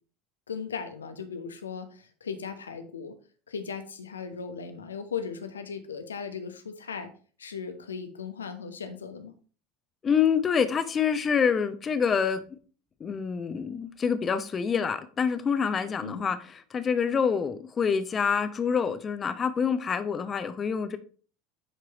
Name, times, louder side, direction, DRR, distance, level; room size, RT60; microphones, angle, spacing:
voice 1, 0.5-3.2 3.5-7.1 7.4-9.3 16.0-16.3, left 6 dB, 80° left, 1.0 m, -37 dB
voice 2, 10.0-12.4 13.0-16.4 16.7-21.0, left 6 dB, 30° left, 0.9 m, -26 dB
9.8 x 4.6 x 3.0 m
figure-of-eight pair, 75°, 0 cm